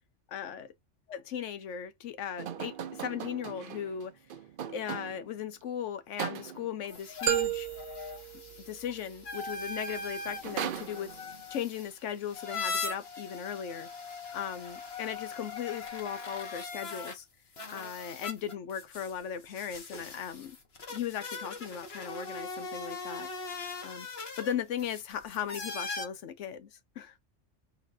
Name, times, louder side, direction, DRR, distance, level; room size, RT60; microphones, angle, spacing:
voice 1, 0.3-0.7 1.1-4.1 4.7-7.7 8.7-11.1 11.5-13.9 14.3-17.3 17.7-20.6 20.9-23.3 23.8-24.1 24.4-26.7 27.0-27.1, left 9 dB, 70° left, 1.0 m, -37 dB
sound 1, 2.4-5.4 6.2-6.8 9.5-9.6 9.9-11.4, right 9 dB, 55° right, 0.6 m, -39 dB
sound 2, 6.8-17.2 17.5-26.1, left 3 dB, 55° left, 1.5 m, -40 dB
sound 3, 7.3-9.3, right 13 dB, 85° right, 1.1 m, -33 dB
4.0 x 4.0 x 2.6 m
omnidirectional pair, 1.3 m